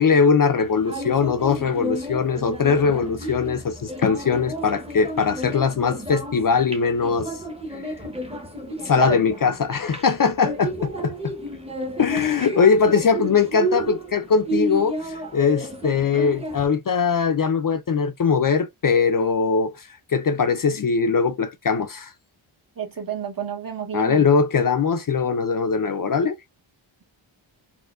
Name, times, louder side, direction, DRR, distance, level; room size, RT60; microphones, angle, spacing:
voice 1, 0.0-7.3 7.7-7.8 8.9-11.3 12.0-22.1 23.9-26.4, left 5 dB, 45° left, 0.5 m, -21 dB
sound 1, 0.6-16.7, right 1 dB, 10° right, 0.8 m, -32 dB
voice 2, 22.8-24.2, right 7 dB, 45° right, 1.0 m, -29 dB
4.3 x 2.2 x 2.3 m
wide cardioid pair, 75°, 49 cm